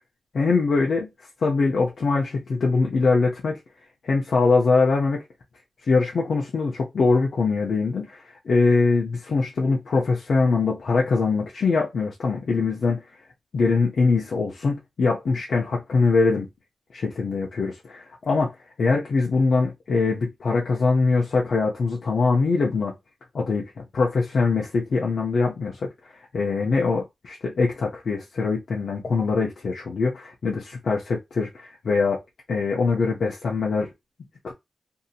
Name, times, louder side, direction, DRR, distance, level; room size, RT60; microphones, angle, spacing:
voice 1, 0.3-1.1 1.4-3.5 4.0-5.2 5.9-13.0 13.5-16.5 16.9-18.5 18.8-22.9 23.3-25.9 26.3-32.2 32.5-33.9 34.4-34.5, left 4 dB, 65° left, 0.6 m, -22 dB
2.7 x 2.7 x 2.3 m
wide cardioid pair, 135°, 0 cm